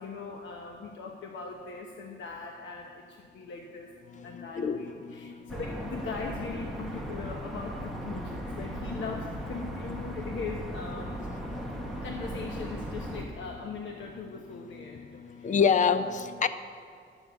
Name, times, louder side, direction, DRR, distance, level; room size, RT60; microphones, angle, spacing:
voice 1, 0.0-3.9 4.2-11.2 12.0-15.6 16.4-16.5, left 4 dB, 75° left, 1 dB, 1.0 m, -40 dB
voice 2, 4.1-5.5 8.4-9.0 11.7-12.0 14.5-14.6 14.9-16.5, left 6 dB, 40° left, 12 dB, 0.6 m, -29 dB
sound 1, 5.5-13.3, right 1 dB, ahead, 1.3 m, -37 dB
11.5 x 7.1 x 8.1 m, 2.2 s
wide cardioid pair, 155°, 20 cm